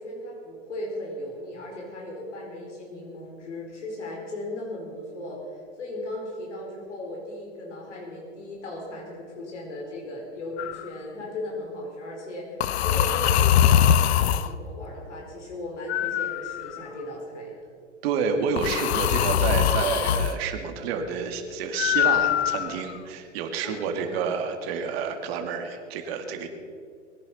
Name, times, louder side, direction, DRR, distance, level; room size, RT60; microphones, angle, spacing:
voice 1, 0.0-17.5 23.6-24.2, left 1 dB, 80° left, -2 dB, 4.6 m, -37 dB
sound 1, 10.6-10.9 12.6-14.5 15.9-17.0 18.6-20.3 21.8-23.0, left 10 dB, 65° left, 0.8 m, -22 dB
voice 2, 18.0-26.5, right 6 dB, 60° right, 5 dB, 2.4 m, -29 dB
21.5 x 11.0 x 5.6 m, 2.2 s
hypercardioid pair, 100°, 36 cm